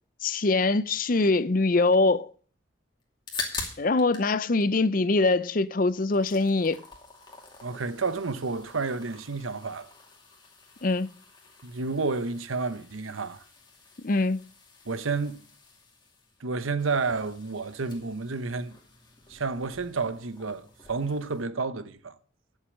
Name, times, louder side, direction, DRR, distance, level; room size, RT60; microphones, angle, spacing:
voice 1, 0.2-2.3 3.8-6.8 10.8-11.1 14.0-14.4, left 3 dB, 45° left, 0.6 m, -23 dB
sound 1, 3.0-4.3 4.6-5.6 5.9-21.4, left 4 dB, 20° left, 2.5 m, -45 dB
voice 2, 7.6-9.9 11.6-13.4 14.8-15.4 16.4-18.8 19.3-22.2, right 4 dB, 90° right, 1.0 m, -30 dB
11.0 x 7.3 x 6.3 m
head